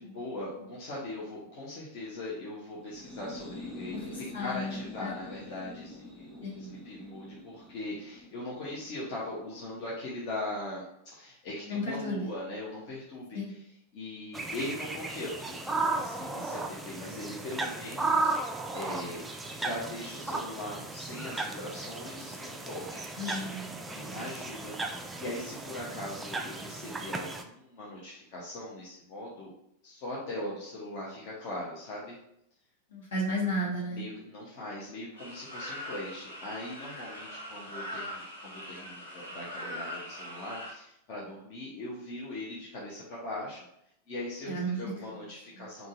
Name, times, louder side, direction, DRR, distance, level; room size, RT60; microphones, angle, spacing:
voice 1, 0.0-10.8 11.1-13.6 13.9-18.3 18.7-23.1 23.9-29.5 29.8-32.2 33.9-43.7 44.1-45.9, left 1 dB, 45° left, -6 dB, 0.7 m, -40 dB
sound 1, 2.8-10.3, left 1 dB, 10° left, 1.4 m, -47 dB
voice 2, 3.9-5.2 6.4-6.7 11.7-12.3 13.3-13.5 23.2-24.2 32.9-34.0 44.5-44.8 45.1-45.2 45.6-45.7, equal, 60° left, -4 dB, 1.1 m, -34 dB
sound 2, 14.3-27.4, right 3 dB, 10° right, 0.3 m, -35 dB
sound 3, 35.2-40.7, left 1 dB, 80° left, 1.0 m, -41 dB
3.8 x 2.3 x 2.5 m, 0.76 s
figure-of-eight pair, 90°, 0 cm